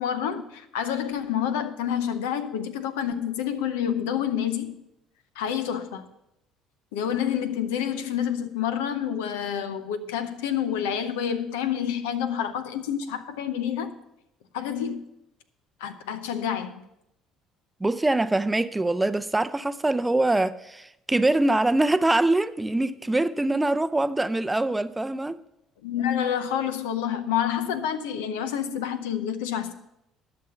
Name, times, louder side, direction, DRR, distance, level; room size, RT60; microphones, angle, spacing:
voice 1, 0.0-4.8 5.4-6.1 6.9-13.9 14.5-15.0 15.8-16.8 25.8-29.7, left 9 dB, 85° left, 0.7 m, -28 dB
voice 2, 17.8-25.4, right 2 dB, 15° right, 0.5 m, -24 dB
12.0 x 6.0 x 5.6 m
hypercardioid pair, 65°, 0 cm